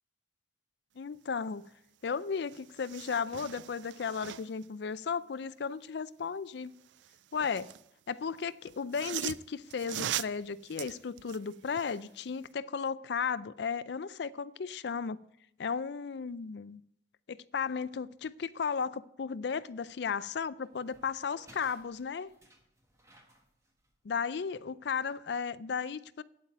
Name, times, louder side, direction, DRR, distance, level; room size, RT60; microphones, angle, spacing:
voice 1, 1.0-1.6 2.0-6.7 7.3-7.7 8.1-15.2 15.6-16.8 17.3-22.3 24.1-26.2, left 6 dB, 70° left, 0.4 m, -35 dB
sound 1, 2.0-2.1 2.4-4.7 6.8-7.9 8.7-12.0 12.4-12.5, right 12 dB, 75° right, 0.3 m, -40 dB
sound 2, 19.5-24.9, right 1 dB, 15° right, 1.4 m, -63 dB
9.0 x 8.1 x 8.8 m
head